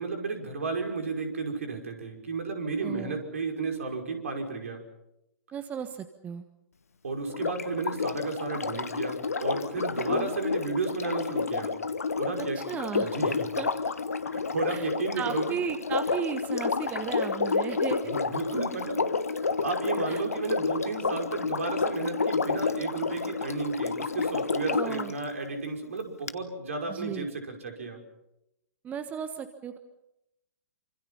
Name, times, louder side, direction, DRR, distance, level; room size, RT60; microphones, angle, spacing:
voice 1, 0.0-4.8 7.0-11.7 12.2-12.6 13.0-13.5 14.2-15.6 18.1-28.0, right 4 dB, 60° right, 4 dB, 5.5 m, -33 dB
voice 2, 2.8-3.2 5.5-6.4 10.1-10.3 12.6-13.1 13.6-13.7 14.7-14.9 15.2-18.1 20.1-20.2 24.7-25.1 26.9-27.3 28.8-29.8, right 7 dB, 20° right, 9 dB, 1.3 m, -35 dB
Sink (filling or washing), 7.3-25.1 26.3-26.4, left 4 dB, 70° left, 1.4 m, -30 dB
28.5 x 26.0 x 5.7 m, 0.85 s
figure-of-eight pair, 110°, 8 cm